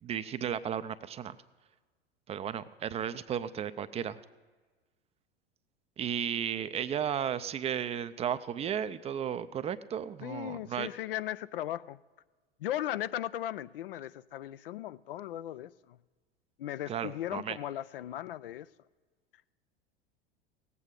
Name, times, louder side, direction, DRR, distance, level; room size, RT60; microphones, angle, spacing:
voice 1, 0.0-1.4 2.3-4.2 6.0-10.9 16.9-17.6, right 9 dB, 20° right, 0.4 m, -34 dB
voice 2, 10.2-12.0 12.6-16.0 16.6-18.7, left 12 dB, 65° left, 0.4 m, -37 dB
18.5 x 8.3 x 3.7 m
figure-of-eight pair, 80°, 29 cm